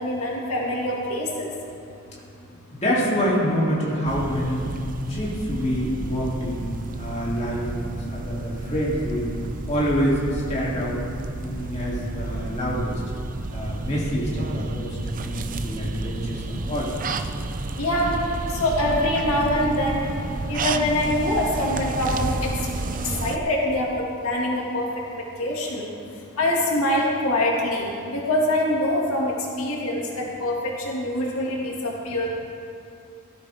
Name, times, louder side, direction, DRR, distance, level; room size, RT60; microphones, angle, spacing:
voice 1, 0.0-1.5 11.9-12.0 15.4-15.7 16.6-16.7 17.5-18.2 18.5-20.0 20.5-22.5 23.0-25.9 26.4-32.3, left 1 dB, 80° left, -3 dB, 2.3 m, -25 dB
voice 2, 2.7-4.7 5.1-6.7 7.0-9.3 9.7-11.0 11.4-13.0 13.5-16.9 17.3-17.4, equal, 30° left, -6 dB, 2.9 m, -26 dB
sound 1, 4.0-23.4, right 2 dB, 40° right, 0.5 m, -31 dB
18.5 x 13.0 x 3.6 m, 2.5 s
head